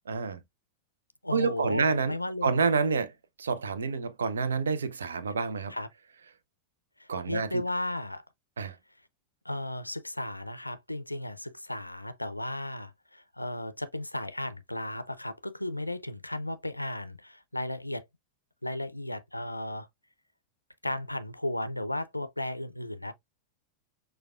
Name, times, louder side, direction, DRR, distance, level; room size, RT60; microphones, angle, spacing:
voice 1, 0.1-0.4 1.3-2.1 2.4-3.1 3.4-5.7 7.1-7.6 8.6-8.7, right 5 dB, 70° right, 0.5 m, -28 dB
voice 2, 1.2-2.6 5.7-5.9 7.0-8.2 9.4-18.0 18.6-19.9 20.8-23.1, left 1 dB, 85° left, 0.4 m, -35 dB
6.3 x 2.2 x 2.4 m
figure-of-eight pair, 90°, 0 cm